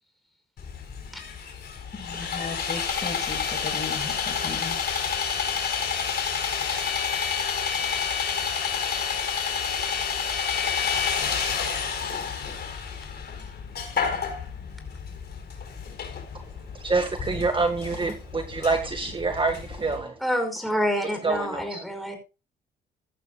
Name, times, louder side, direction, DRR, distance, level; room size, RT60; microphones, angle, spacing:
Sawing, 0.6-20.0, left 6 dB, 55° left, 4.2 m, -29 dB
voice 1, 1.9-4.8, left 4 dB, 35° left, 7.9 m, -37 dB
voice 2, 16.7-20.2 21.2-21.8, right 3 dB, 25° right, 1.8 m, -26 dB
voice 3, 20.2-22.2, equal, ahead, 5.2 m, -28 dB
15.5 x 12.0 x 2.3 m
cardioid pair, 90°, 20 cm